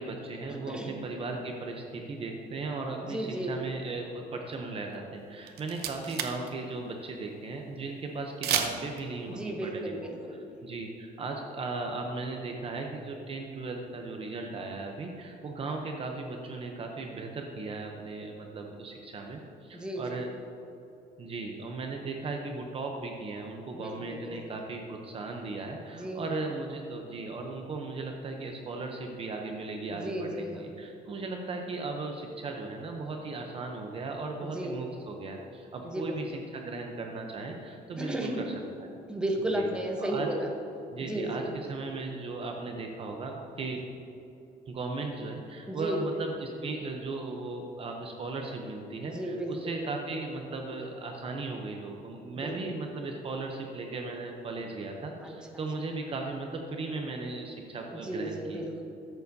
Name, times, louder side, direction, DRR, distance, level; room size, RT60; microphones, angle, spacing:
voice 1, 0.0-9.9 10.3-20.3 21.2-38.4 38.8-38.9 39.4-39.7 40.0-40.3 40.9-43.8 44.7-58.6, right 3 dB, 35° right, 2 dB, 0.7 m, -37 dB
voice 2, 0.7-1.0 3.1-3.5 9.3-10.4 19.7-20.2 23.7-24.4 25.9-26.3 29.9-30.7 34.4-34.7 35.8-36.2 38.0-38.5 39.1-40.5 41.0-41.5 45.7-46.0 49.1-49.9 52.3-52.6 55.2-55.3 57.9-58.8, right 1 dB, 5° right, 1 dB, 0.9 m, -34 dB
sound 1, 5.2-5.3 5.5-6.5 6.8-6.9 8.4-9.0, right 9 dB, 70° right, 0.7 m, -30 dB
13.5 x 6.9 x 2.7 m, 2.8 s
cardioid pair, 160°, 17 cm